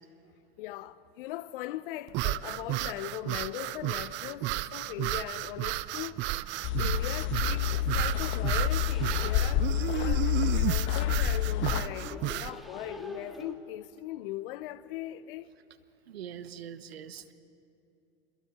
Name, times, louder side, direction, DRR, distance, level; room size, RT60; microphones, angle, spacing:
voice 1, 0.6-6.3 6.8-10.3 10.6-15.5, left 14 dB, 60° left, 0.8 m, -40 dB
sound 1, 2.1-12.6, right 17 dB, 40° right, 0.5 m, -33 dB
sound 2, 5.4-13.5, equal, ahead, 1.8 m, -50 dB
sound 3, 6.6-11.8, left 11 dB, 40° left, 1.2 m, -28 dB
voice 2, 16.1-17.3, right 9 dB, 80° right, 1.1 m, -43 dB
28.5 x 22.0 x 4.2 m
hypercardioid pair, 90°, 31 cm